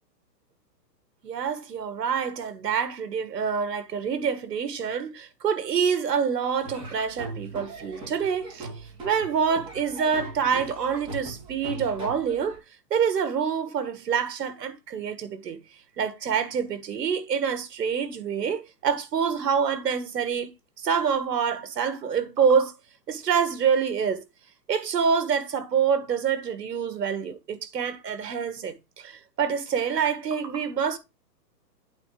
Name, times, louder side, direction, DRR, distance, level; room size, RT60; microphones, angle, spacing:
voice 1, 1.2-8.7 9.0-12.6 12.9-15.6 16.0-20.5 20.8-22.7 23.1-24.2 24.7-31.0, right 6 dB, 75° right, 1.9 m, -26 dB
Laughter / Drum, 6.6-12.6, right 2 dB, 10° right, 2.0 m, -40 dB
8.8 x 3.4 x 6.6 m
hypercardioid pair, 170°, 50 cm